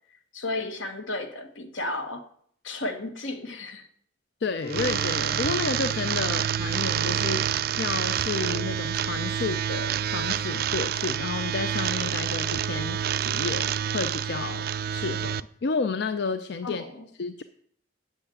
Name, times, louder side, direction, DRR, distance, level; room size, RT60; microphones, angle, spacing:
voice 1, 0.3-2.2 2.6-3.9 16.6-17.1, left 2 dB, 75° left, 7 dB, 1.4 m, -33 dB
voice 2, 4.4-16.8 17.2-17.4, left 4 dB, 55° left, 10 dB, 0.4 m, -31 dB
sound 1, 4.6-8.6, left 1 dB, 40° left, 0.8 m, -43 dB
sound 2, 4.7-15.4, right 9 dB, 50° right, 0.3 m, -28 dB
8.2 x 6.7 x 8.4 m, 0.63 s
head